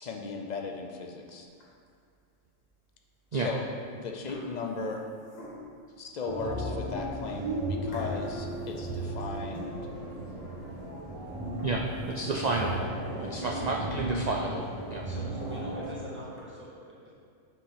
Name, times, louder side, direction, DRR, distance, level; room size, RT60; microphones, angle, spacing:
voice 1, 0.0-1.5 3.3-3.7 4.0-5.0 6.0-9.8 12.6-13.1, left 4 dB, 50° left, 2 dB, 0.5 m, -37 dB
sound 1, 1.5-2.0 2.6-2.7 3.5-3.8 4.0-5.9 6.5-6.6 7.0-7.1 7.9-9.7 10.1-10.2 10.7-10.8 11.4-13.0 13.5-13.6 14.0-14.1 14.4-14.5 14.8-14.9 15.8-16.4, left 2 dB, 80° left, 1.6 m, -49 dB
sound 2, 6.2-15.9, right 1 dB, 30° right, 1.3 m, -35 dB
voice 2, 11.6-12.8 13.2-15.0, right 3 dB, 85° right, 0 dB, 0.3 m, -31 dB
voice 3, 15.1-17.1, equal, 10° right, -9 dB, 1.7 m, -43 dB
5.5 x 4.4 x 5.6 m, 2.2 s
omnidirectional pair, 1.3 m